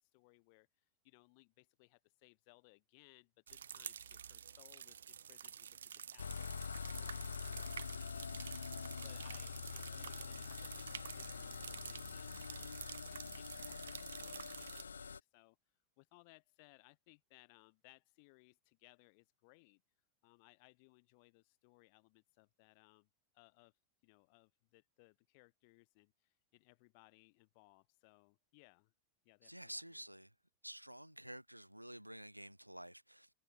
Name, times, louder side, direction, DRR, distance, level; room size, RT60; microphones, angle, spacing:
voice 1, 0.0-15.6 16.0-19.8 20.2-23.7 24.0-28.9 29.2-30.0, left 32 dB, 45° left, 5.0 m, -67 dB
sound 1, 3.5-14.8, right 8 dB, 65° right, 0.6 m, -50 dB
sound 2, 6.2-15.2, left 6 dB, 75° left, 0.3 m, -45 dB
voice 2, 29.4-30.3 30.6-33.3, right 1 dB, 90° right, 2.4 m, -50 dB
figure-of-eight pair, 90°, 0 cm